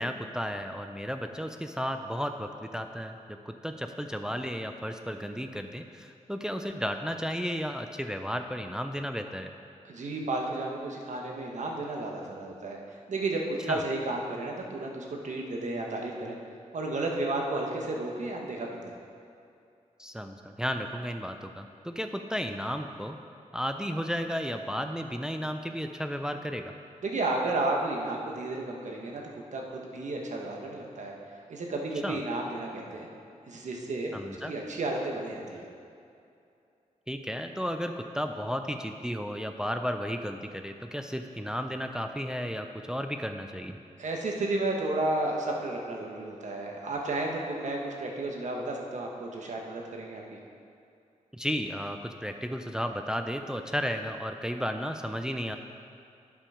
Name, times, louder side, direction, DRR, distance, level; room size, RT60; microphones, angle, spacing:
voice 1, 0.0-9.5 13.7-13.8 20.0-23.2 23.5-26.7 32.0-32.2 34.1-34.5 37.1-43.8 51.3-55.6, equal, 5° right, 6 dB, 0.4 m, -33 dB
voice 2, 9.8-16.4 16.7-18.9 27.0-29.2 29.5-31.1 31.5-33.1 33.5-35.6 44.0-50.4, right 2 dB, 65° right, 0 dB, 1.4 m, -32 dB
11.5 x 6.2 x 5.0 m, 2.6 s
wide cardioid pair, 105°, 13 cm